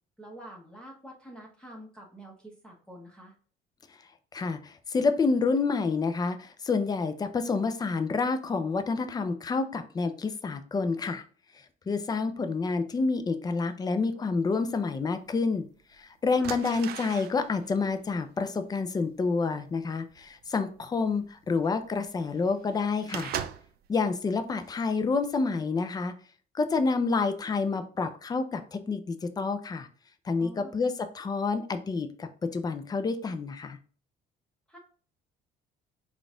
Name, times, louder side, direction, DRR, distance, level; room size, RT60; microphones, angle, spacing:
voice 1, 0.2-3.3 16.3-16.6 30.4-30.8 34.7-34.8, right 1 dB, 5° left, -1 dB, 1.1 m, -47 dB
voice 2, 4.3-11.2 11.9-15.6 16.0-23.3 23.9-26.1 26.5-29.9 30.2-33.8, left 4 dB, 25° left, 9 dB, 0.4 m, -28 dB
sound 1, 14.9-15.0 15.8-16.0 16.4-23.9 24.3-24.7 25.1-25.4, right 9 dB, 65° right, 0.4 m, -40 dB
3.9 x 2.4 x 3.7 m, 0.42 s
cardioid pair, 110°, 17 cm